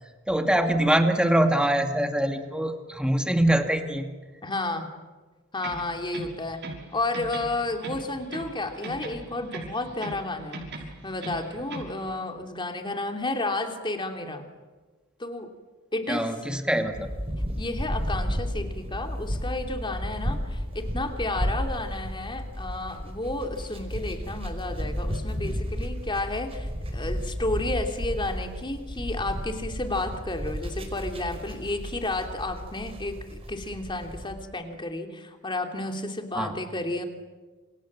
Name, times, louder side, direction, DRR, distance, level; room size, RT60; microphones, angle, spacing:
voice 1, 0.3-4.1 16.1-17.1 36.3-36.6, right 1 dB, 5° right, 5 dB, 2.5 m, -24 dB
voice 2, 4.4-4.9 5.5-6.6 6.9-10.7 11.0-14.5 15.2-15.5 15.9-16.3 17.6-37.0, left 2 dB, 20° left, 5 dB, 3.0 m, -32 dB
sound 1, 5.6-6.9 7.1-8.6 8.8-10.3 10.5-12.0, right 2 dB, 55° right, 6.4 m, -38 dB
sound 2, 16.9-34.3, equal, 25° right, 5.1 m, -33 dB
28.0 x 28.0 x 7.6 m, 1.3 s
head